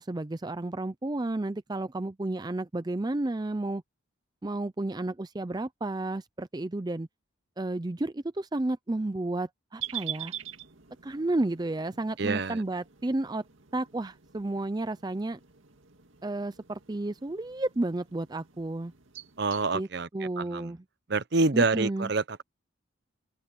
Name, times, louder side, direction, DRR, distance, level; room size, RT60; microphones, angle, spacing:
voice 1, 0.0-3.8 4.4-7.1 7.6-10.3 11.0-13.4 13.7-15.4 16.2-18.9 19.7-19.9 20.1-20.8 21.5-22.1, right 2 dB, 20° right, 0.4 m, -32 dB
sound 1, 9.8-19.7, right 11 dB, 70° right, 2.1 m, -45 dB
voice 2, 12.2-12.6 19.4-20.1 20.4-20.7 21.1-22.4, right 3 dB, 55° right, 0.8 m, -27 dB
open air
head